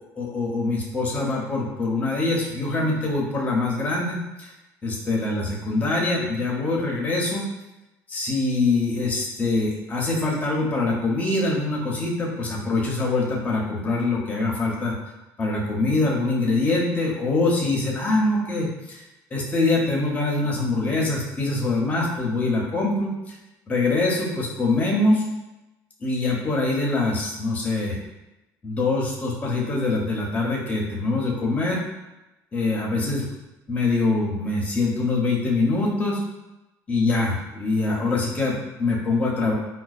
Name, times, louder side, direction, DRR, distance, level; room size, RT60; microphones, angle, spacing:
voice 1, 0.2-4.5 4.8-7.5 8.1-14.9 15.4-19.0 19.3-23.4 23.7-25.2 26.0-28.0 28.6-31.8 32.5-33.3 33.7-36.2 36.9-39.5, left 2 dB, 20° left, -3 dB, 0.7 m, -24 dB
5.0 x 2.2 x 2.4 m, 0.99 s
cardioid pair, 170°, 7 cm